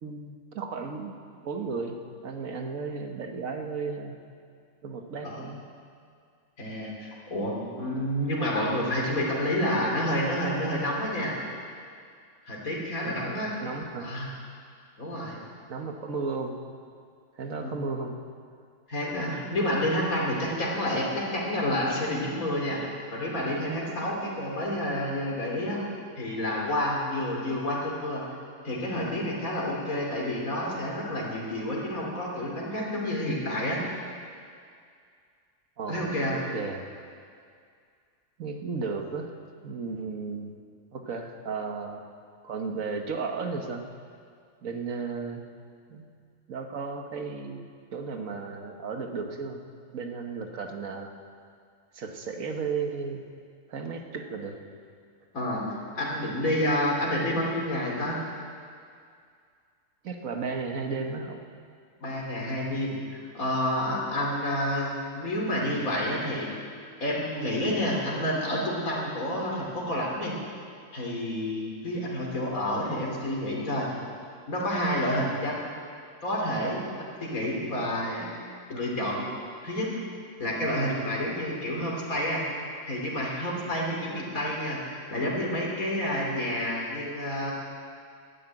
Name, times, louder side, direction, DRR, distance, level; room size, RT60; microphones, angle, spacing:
voice 1, 0.0-4.1 4.8-5.6 13.0-14.1 15.7-16.6 17.4-18.2 24.2-24.3 35.8-36.9 38.4-39.3 39.6-40.6 40.9-42.1 42.4-43.9 44.6-45.5 45.9-46.1 46.5-47.6 47.9-49.7 49.9-51.1 51.9-53.2 53.7-54.6 60.0-61.4, right 4 dB, 75° right, 4 dB, 1.6 m, -34 dB
voice 2, 6.6-11.4 12.5-13.5 14.0-14.3 15.0-15.4 17.6-17.7 18.9-22.8 23.1-25.8 26.2-28.2 28.6-33.8 35.9-36.4 55.3-58.2 62.0-66.5 67.0-70.4 70.9-73.9 74.5-75.7 76.2-78.3 78.7-79.3 79.6-79.9 80.4-82.5 82.9-87.5, left 1 dB, 80° left, -3 dB, 3.5 m, -29 dB
12.5 x 10.0 x 9.0 m, 2.2 s
omnidirectional pair, 1.4 m